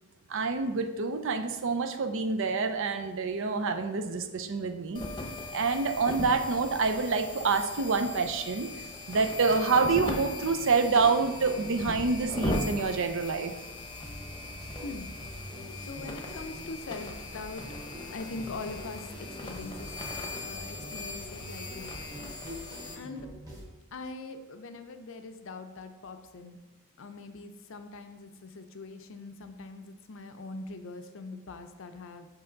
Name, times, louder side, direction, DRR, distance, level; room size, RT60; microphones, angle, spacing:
voice 1, 0.3-5.0 5.5-8.7 9.1-13.5, right 4 dB, 60° right, 8 dB, 0.5 m, -27 dB
sound 1, 4.9-23.0, left 2 dB, 20° left, 0.8 m, -39 dB
sound 2, 14.0-23.6, equal, 15° right, 1.4 m, -45 dB
voice 2, 14.8-15.1 15.8-17.6 18.1-19.9 20.4-22.3 22.9-23.3 23.9-26.6 27.0-32.3, left 3 dB, 60° left, 8 dB, 0.6 m, -42 dB
5.8 x 5.6 x 3.9 m, 1.2 s
head